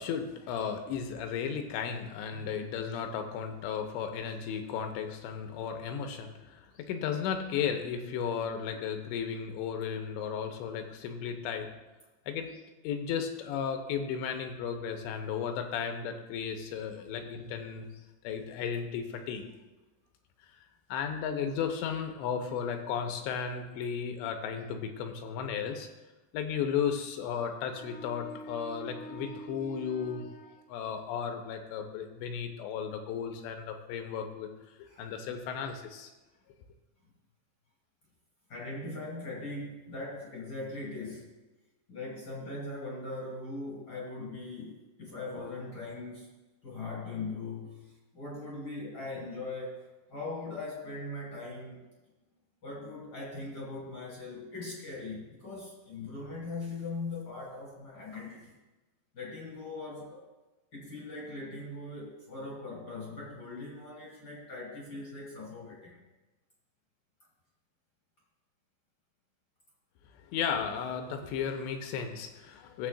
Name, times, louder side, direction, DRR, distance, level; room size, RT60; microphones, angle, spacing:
voice 1, 0.0-11.7 12.3-12.5 12.8-17.9 18.2-19.4 20.9-25.9 26.3-34.5 34.8-36.1 70.2-72.9, left 7 dB, 90° left, 5 dB, 3.0 m, -34 dB
voice 2, 38.5-41.4 41.9-46.4 46.6-51.9 52.6-58.5 59.1-60.3 60.7-66.0, left 2 dB, 45° left, -4 dB, 1.3 m, -40 dB
16.5 x 7.4 x 2.4 m, 1.1 s
omnidirectional pair, 5.1 m